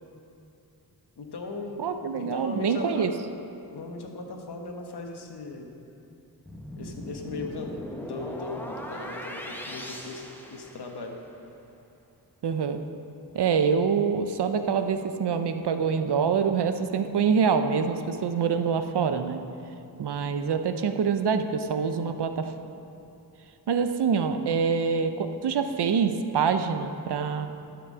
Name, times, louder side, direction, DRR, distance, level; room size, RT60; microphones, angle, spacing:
voice 1, 1.2-3.1 3.7-5.7 6.8-11.2, left 3 dB, 75° left, 3 dB, 1.2 m, -38 dB
voice 2, 1.8-3.1 12.4-12.8 13.3-19.4 20.0-22.5 23.7-27.5, right 6 dB, 85° right, 8 dB, 0.7 m, -25 dB
sound 1, 6.5-11.2, equal, 5° left, 0.9 m, -39 dB
12.0 x 6.1 x 6.1 m, 2.7 s
wide cardioid pair, 105°, 39 cm